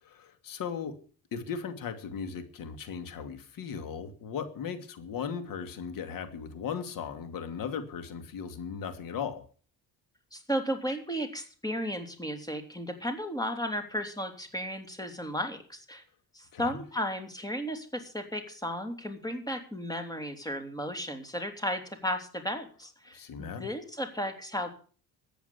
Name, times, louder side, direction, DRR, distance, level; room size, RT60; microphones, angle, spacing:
voice 1, 0.0-0.9 1.3-9.4 16.5-16.8 23.1-23.6, left 6 dB, 65° left, 9 dB, 2.6 m, -37 dB
voice 2, 10.3-16.0 16.3-24.7, equal, 10° left, 6 dB, 3.2 m, -34 dB
14.0 x 8.4 x 8.3 m, 0.43 s
cardioid pair, 115°, 37 cm